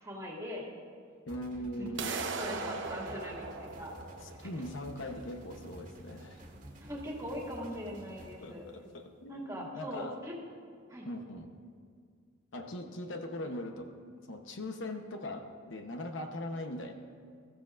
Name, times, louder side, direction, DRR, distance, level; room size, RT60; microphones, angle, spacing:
voice 1, 0.0-0.6 1.8-4.0 4.4-4.5 6.8-8.6 9.3-10.3 10.9-11.1, equal, 15° right, -4 dB, 2.3 m, -41 dB
voice 2, 1.3-2.2 4.2-6.4 8.4-10.2 11.0-11.5 12.5-13.9 14.3-16.9, left 1 dB, 65° left, 5 dB, 0.9 m, -40 dB
sound 1, 1.3-8.3, right 1 dB, 40° right, 1.8 m, -51 dB
sound 2, 2.0-8.0, right 4 dB, 65° right, 0.9 m, -41 dB
21.5 x 14.0 x 2.5 m, 2.1 s
head